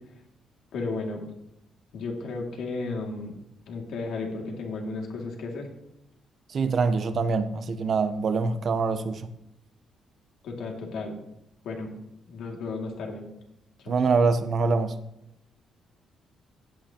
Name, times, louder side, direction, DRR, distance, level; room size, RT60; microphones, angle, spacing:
voice 1, 0.7-1.2 1.9-3.3 3.7-5.7 10.4-11.2 11.6-11.9 12.3-13.3 13.8-13.9, left 3 dB, 75° left, 2.3 m, -33 dB
voice 2, 6.5-9.3 13.9-14.9, right 4 dB, 55° right, 0.8 m, -24 dB
15.0 x 8.6 x 2.9 m
cardioid pair, 90°, 0 cm